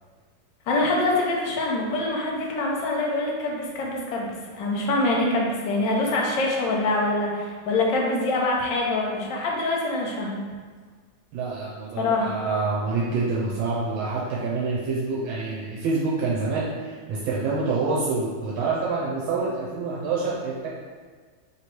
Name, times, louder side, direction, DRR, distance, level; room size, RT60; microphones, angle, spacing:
voice 1, 0.7-10.4 12.0-12.3, left 2 dB, 70° left, -2 dB, 1.3 m, -25 dB
voice 2, 11.3-20.7, right 3 dB, 80° right, -6 dB, 1.4 m, -27 dB
3.3 x 3.0 x 4.4 m, 1.5 s
omnidirectional pair, 2.2 m